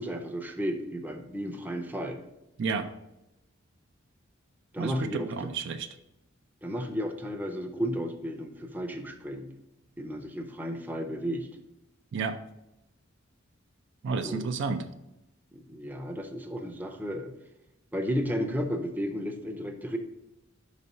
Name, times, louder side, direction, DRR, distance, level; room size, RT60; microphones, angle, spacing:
voice 1, 0.0-2.2 4.7-5.5 6.6-9.5 10.0-11.5 14.1-14.5 15.5-17.3 17.9-20.0, equal, 10° right, 4 dB, 0.5 m, -33 dB
voice 2, 4.8-5.9 12.1-12.4 14.0-14.8, right 4 dB, 60° right, 9 dB, 0.4 m, -31 dB
5.4 x 4.1 x 5.3 m, 0.89 s
head